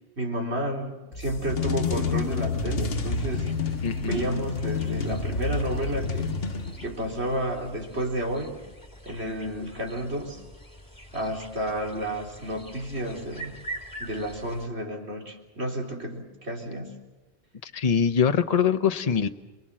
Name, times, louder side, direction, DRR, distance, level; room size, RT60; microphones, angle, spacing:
voice 1, 0.0-6.3 6.8-8.6 9.0-10.4 11.1-13.5 14.0-17.0, right 1 dB, 85° right, 1 dB, 4.0 m, -31 dB
sound 1, 1.1-7.1, left 5 dB, 65° left, 1.3 m, -29 dB
sound 2, 2.7-14.7, right 1 dB, 20° left, 3.1 m, -45 dB
voice 2, 17.6-19.3, left 7 dB, 40° left, 7 dB, 0.9 m, -23 dB
28.5 x 20.5 x 7.5 m, 1.2 s
omnidirectional pair, 1.1 m